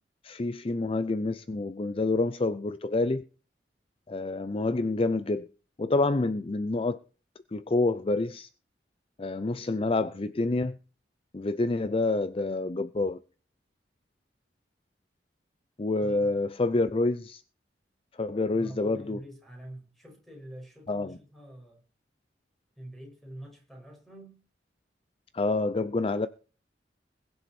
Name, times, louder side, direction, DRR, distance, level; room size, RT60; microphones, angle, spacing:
voice 1, 0.2-3.2 4.1-5.5 5.8-7.0 7.5-8.5 9.2-10.8 11.3-13.2 15.8-17.4 18.2-19.2 20.9-21.2 25.3-26.3, left 2 dB, 30° left, 0.5 m, -27 dB
voice 2, 16.0-16.4 18.5-21.8 22.8-24.4, right 1 dB, ahead, 5.5 m, -46 dB
21.5 x 7.6 x 4.3 m
head